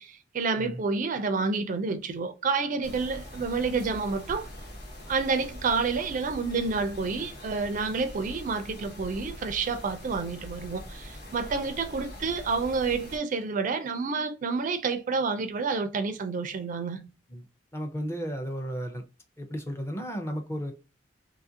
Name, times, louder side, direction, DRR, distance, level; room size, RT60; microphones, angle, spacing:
voice 1, 0.0-4.5 5.1-17.1, right 4 dB, 45° right, 0.4 m, -29 dB
sound 1, 2.8-13.2, equal, 55° left, 1.1 m, -43 dB
voice 2, 17.7-19.0 19.4-20.7, equal, 15° left, 0.5 m, -34 dB
2.8 x 2.5 x 2.6 m
head